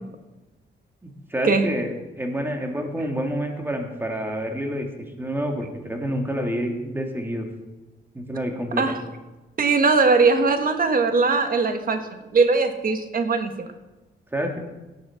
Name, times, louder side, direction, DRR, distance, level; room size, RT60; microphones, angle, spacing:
voice 1, 1.0-4.9 5.2-7.5 8.1-8.8 14.3-14.6, equal, 10° right, 3 dB, 1.9 m, -28 dB
voice 2, 9.6-13.7, right 4 dB, 45° right, 7 dB, 1.4 m, -20 dB
17.0 x 6.5 x 5.7 m, 1.1 s
cardioid pair, 120°, 20 cm